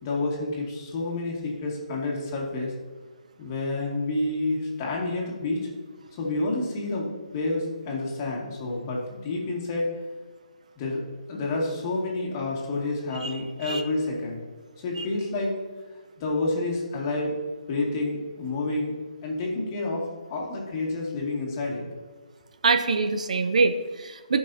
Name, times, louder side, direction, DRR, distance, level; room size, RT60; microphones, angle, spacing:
voice 1, 0.0-2.7 3.4-5.7 6.2-7.1 7.3-9.9 10.8-11.0 11.3-14.4 14.8-15.5 16.2-17.4 17.7-19.0 19.2-21.8, left 2 dB, 30° left, -2 dB, 2.1 m, -29 dB
voice 2, 22.6-24.4, right 4 dB, 65° right, 9 dB, 0.7 m, -24 dB
13.5 x 5.6 x 2.8 m, 1.5 s
hypercardioid pair, 155°, 4 cm